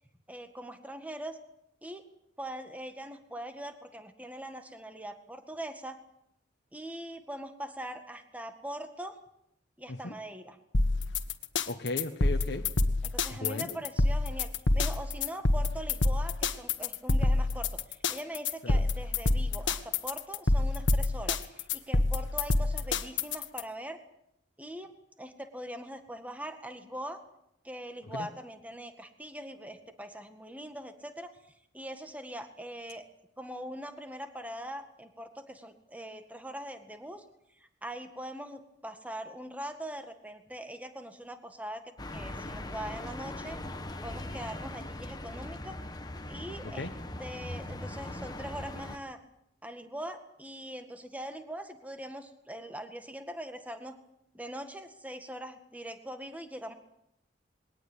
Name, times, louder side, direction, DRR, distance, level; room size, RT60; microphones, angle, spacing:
voice 1, 0.3-1.4 1.8-2.0 2.4-6.0 6.7-9.2 9.8-10.6 13.0-24.0 24.6-24.9 25.2-27.2 27.6-31.4 31.7-33.0 33.4-37.2 37.6-43.6 44.0-45.8 46.3-46.9 47.2-49.2 49.6-54.0 54.3-56.7, right 1 dB, 10° right, 7 dB, 1.9 m, -42 dB
sound 1, 10.7-23.6, left 2 dB, 90° left, 1.6 m, -27 dB
voice 2, 11.7-12.7 13.3-13.8 18.6-18.8 28.0-28.3 46.6-46.9, left 2 dB, 60° left, 4 dB, 1.3 m, -36 dB
sound 2, 42.0-49.0, left 1 dB, 20° left, 1.5 m, -40 dB
21.5 x 18.5 x 8.9 m, 0.78 s
head